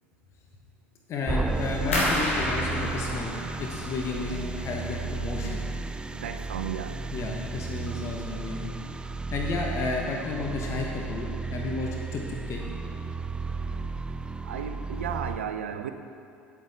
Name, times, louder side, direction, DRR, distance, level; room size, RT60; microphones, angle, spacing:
voice 1, 1.1-3.3 3.6-5.7 7.1-8.7 9.3-12.7 13.8-13.9, left 3 dB, 45° left, 0 dB, 1.2 m, -32 dB
sound 1, 1.3-15.4, right 4 dB, 15° right, 0.3 m, -34 dB
sound 2, 1.9-4.8 5.1-5.8 6.1-6.5 7.0-7.1, left 1 dB, 85° left, 1.8 m, -31 dB
voice 2, 6.1-7.0 14.4-15.9, right 8 dB, 80° right, 8 dB, 0.5 m, -34 dB
10.0 x 7.8 x 4.4 m, 2.5 s
figure-of-eight pair, 70°, 7 cm